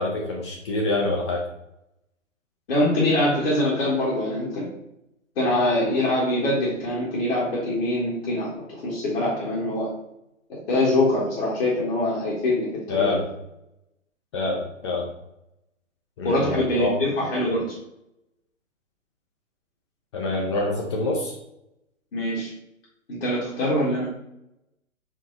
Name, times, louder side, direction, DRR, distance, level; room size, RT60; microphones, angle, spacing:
voice 1, 0.0-1.4 12.9-13.2 14.3-15.1 16.2-16.9 20.1-21.3, left 2 dB, 20° left, -1 dB, 0.5 m, -26 dB
voice 2, 2.7-4.7 5.3-9.9 10.5-13.2 16.2-17.8 22.1-22.5 23.1-24.1, left 1 dB, 50° left, -7 dB, 1.6 m, -24 dB
4.6 x 2.9 x 3.9 m, 0.83 s
figure-of-eight pair, 120°, 39 cm